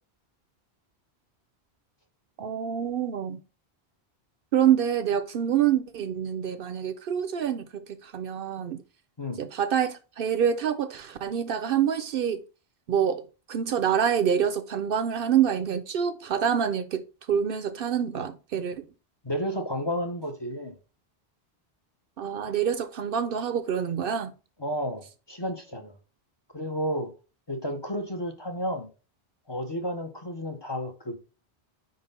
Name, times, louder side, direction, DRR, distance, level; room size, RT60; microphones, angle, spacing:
voice 1, 2.4-3.4 4.5-8.8 9.4-12.4 12.9-17.0 17.3-18.8 22.2-24.3, right 8 dB, 65° right, 0.7 m, -26 dB
voice 2, 19.2-20.7 24.6-26.0 26.5-27.1 27.5-28.9 29.5-31.2, equal, 30° left, 0.7 m, -32 dB
4.9 x 3.9 x 5.3 m
omnidirectional pair, 1.1 m